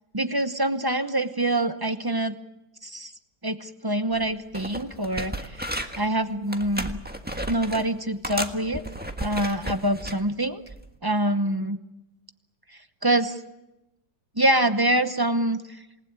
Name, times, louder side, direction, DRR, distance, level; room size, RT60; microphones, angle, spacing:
voice 1, 0.1-2.4 2.8-3.1 3.4-5.6 6.0-7.0 7.5-8.8 9.2-10.6 11.0-11.8 13.0-13.4 14.4-15.6, right 1 dB, 25° right, 10 dB, 0.5 m, -25 dB
sound 1, 4.1-4.3 4.5-6.1 6.5-7.9 8.2-10.2 10.7-10.9, right 1 dB, 5° right, 1.3 m, -33 dB
27.5 x 19.5 x 8.8 m, 0.97 s
omnidirectional pair, 2.0 m